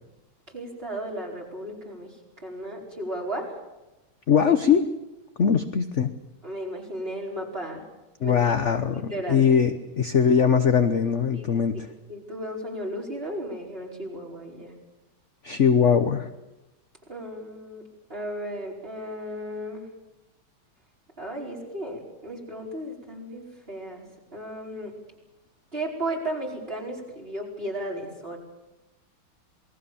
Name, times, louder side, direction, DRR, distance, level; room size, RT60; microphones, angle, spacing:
voice 1, 0.5-3.6 6.4-7.8 8.2-8.4 8.9-9.5 11.3-11.6 12.1-14.7 17.1-17.8 18.1-19.8 21.2-24.1 24.3-24.9 25.7-28.4, right 1 dB, 25° right, 0 dB, 5.2 m, -34 dB
voice 2, 4.3-4.8 5.4-6.1 8.2-9.0 9.3-11.9 15.4-16.3, left 7 dB, 45° left, 9 dB, 1.1 m, -21 dB
27.5 x 20.5 x 7.2 m, 1.0 s
omnidirectional pair, 2.2 m